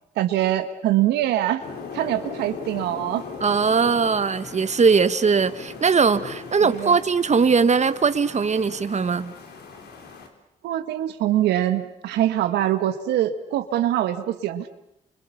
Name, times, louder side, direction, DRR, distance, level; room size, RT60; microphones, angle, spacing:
voice 1, 0.1-1.6 1.9-3.2 6.6-7.0 10.6-14.7, right 12 dB, 85° right, 8 dB, 1.5 m, -23 dB
sound 1, 1.6-10.3, left 5 dB, 70° left, 4.4 m, -39 dB
voice 2, 3.4-9.3, right 5 dB, 40° right, 12 dB, 1.5 m, -20 dB
29.5 x 25.5 x 7.1 m, 0.82 s
supercardioid pair, 50°, 17 cm